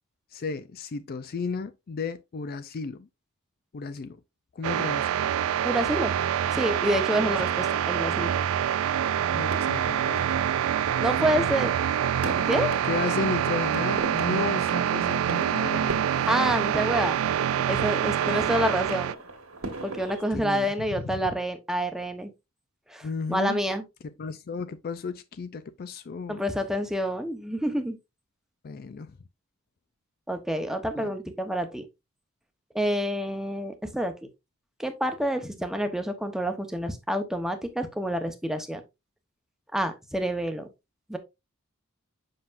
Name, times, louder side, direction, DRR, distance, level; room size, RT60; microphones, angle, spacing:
voice 1, 0.3-3.1 3.7-4.2 4.5-5.1 7.2-7.3 9.3-10.3 11.2-11.5 12.8-16.0 18.3-18.5 20.3-20.7 21.0-21.2 23.0-23.6 24.2-26.4 28.6-29.2 31.0-31.1, left 4 dB, 45° left, 0.4 m, -34 dB
sound 1, 4.6-19.1, right 9 dB, 75° right, 0.3 m, -26 dB
voice 2, 5.6-6.1 6.5-8.3 11.0-11.7 12.5-12.7 16.3-17.2 17.7-19.1 19.8-22.3 22.9-23.8 26.3-28.0 30.3-31.8 32.7-34.1 34.8-38.8 39.7-40.7 41.1-41.2, equal, ahead, 0.9 m, -28 dB
sound 2, 9.0-20.3, right 2 dB, 90° right, 1.8 m, -39 dB
7.6 x 5.8 x 2.5 m
head